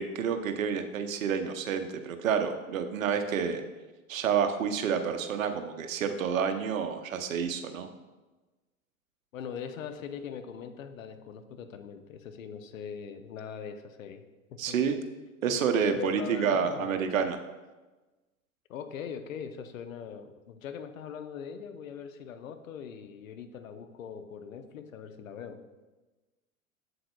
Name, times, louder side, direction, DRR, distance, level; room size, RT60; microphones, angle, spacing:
voice 1, 0.0-3.6 4.1-7.9 14.6-15.0 15.4-17.4, right 7 dB, 70° right, 7 dB, 0.8 m, -29 dB
voice 2, 9.3-14.2 14.5-14.8 16.0-17.0 18.7-25.6, left 7 dB, 70° left, 8 dB, 0.8 m, -41 dB
7.8 x 7.6 x 2.3 m, 1.2 s
figure-of-eight pair, 90°, 42 cm